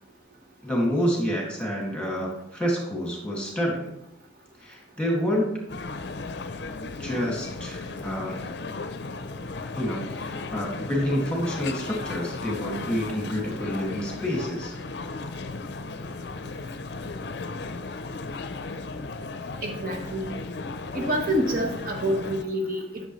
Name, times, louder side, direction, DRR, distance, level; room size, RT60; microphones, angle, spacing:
voice 1, 0.6-3.9 4.6-5.7 7.0-8.4 9.7-14.8 15.2-15.3, equal, 5° left, -2 dB, 2.1 m, -28 dB
sound 1, 5.7-22.4, left 3 dB, 60° left, 0.5 m, -35 dB
voice 2, 19.6-20.4 20.9-23.1, equal, 45° right, 1 dB, 1.2 m, -27 dB
12.0 x 7.0 x 3.1 m, 0.81 s
head